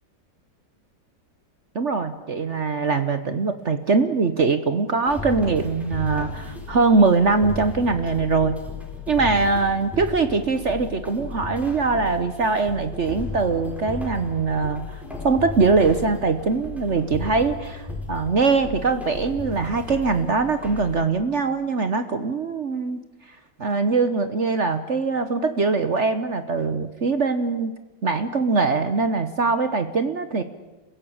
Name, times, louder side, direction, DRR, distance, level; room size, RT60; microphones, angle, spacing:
voice 1, 1.7-8.6 9.1-23.0 23.6-27.7 28.0-30.4, right 4 dB, 45° right, 10 dB, 1.3 m, -22 dB
sound 1, 5.1-21.0, left 3 dB, ahead, 4.3 m, -35 dB
29.0 x 16.0 x 8.7 m, 1.1 s
omnidirectional pair, 1.9 m